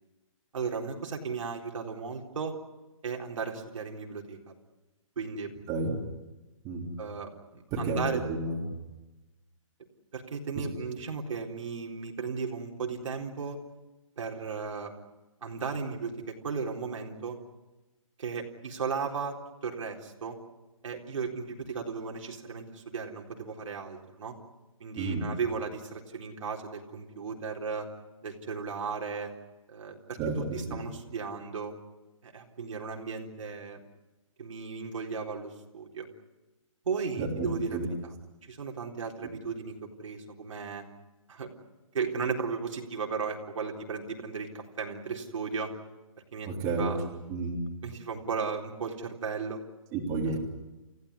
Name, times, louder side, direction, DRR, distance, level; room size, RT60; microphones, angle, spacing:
voice 1, 0.5-2.6 3.0-4.5 5.2-5.5 7.0-8.2 10.1-13.6 14.2-14.9 15.4-17.4 18.2-19.4 19.6-20.4 20.8-24.3 24.8-27.9 28.2-29.3 29.7-31.7 32.2-33.8 34.4-36.1 36.9-37.9 38.4-40.8 41.3-41.5 41.9-45.7 46.3-47.0 47.8-49.6 50.2-50.4, right 5 dB, 70° right, 1 dB, 4.0 m, -35 dB
voice 2, 5.7-6.0 6.6-6.9 7.7-8.7 25.0-25.2 30.2-30.4 37.2-37.3 37.7-37.8 46.5-46.9 47.3-47.6 49.9-50.4, right 3 dB, 20° right, -1 dB, 3.7 m, -30 dB
29.5 x 16.0 x 9.7 m, 1.1 s
hypercardioid pair, 160°, 17 cm